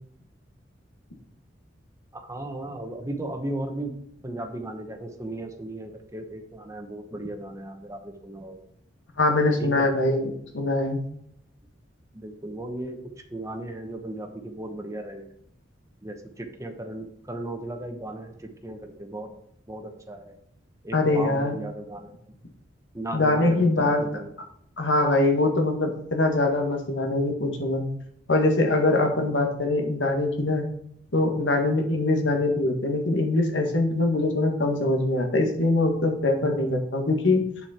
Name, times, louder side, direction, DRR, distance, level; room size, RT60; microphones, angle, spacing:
voice 1, 2.1-4.0 4.2-8.6 9.6-9.9 12.1-13.0 13.3-15.3 16.0-19.3 19.7-20.4 20.8-22.1 22.9-24.3, right 1 dB, 15° right, 4 dB, 0.9 m, -36 dB
voice 2, 9.2-11.0 20.9-21.6 23.1-24.0 24.8-27.8 28.3-30.6 31.1-37.4, left 2 dB, 75° left, 3 dB, 1.6 m, -23 dB
8.3 x 6.1 x 4.3 m, 0.70 s
head